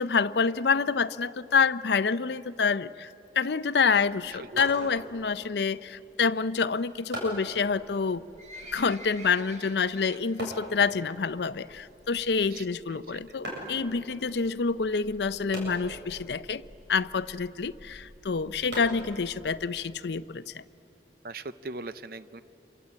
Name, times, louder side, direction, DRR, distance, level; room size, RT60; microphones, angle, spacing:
voice 1, 0.0-3.1 3.4-8.2 8.7-16.6 16.9-20.6, left 5 dB, 75° left, 14 dB, 0.6 m, -27 dB
sound 1, 4.2-19.7, right 1 dB, 80° right, 7.7 m, -44 dB
voice 2, 4.4-4.9 12.5-13.4 21.2-22.4, right 3 dB, 55° right, 14 dB, 0.6 m, -41 dB
Livestock farm animals working animals, 8.1-10.7 11.0-11.3 11.6-11.7 12.4-12.5 12.7-12.8 13.0-13.1 13.7-13.9 14.5-14.6 14.8-14.9 15.1-15.2 15.4-15.5 16.0-16.1 16.5-16.6 17.1-17.2, right 1 dB, 40° right, 1.6 m, -47 dB
27.0 x 23.5 x 8.5 m, 3.0 s
head